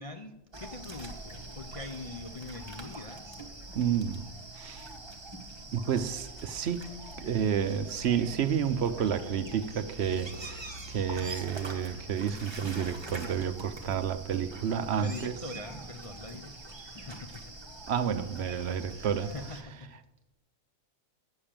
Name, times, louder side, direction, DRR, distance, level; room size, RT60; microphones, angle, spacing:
voice 1, 0.0-3.4 15.0-17.4 18.8-19.9, left 3 dB, 45° left, 0.4 m, -43 dB
sound 1, 0.5-19.6, right 2 dB, 20° right, 1.0 m, -44 dB
voice 2, 3.7-4.3 4.6-4.9 5.7-6.9 7.2-15.3 17.9-19.3, right 8 dB, 60° right, 0.8 m, -30 dB
8.6 x 6.8 x 7.3 m
omnidirectional pair, 1.5 m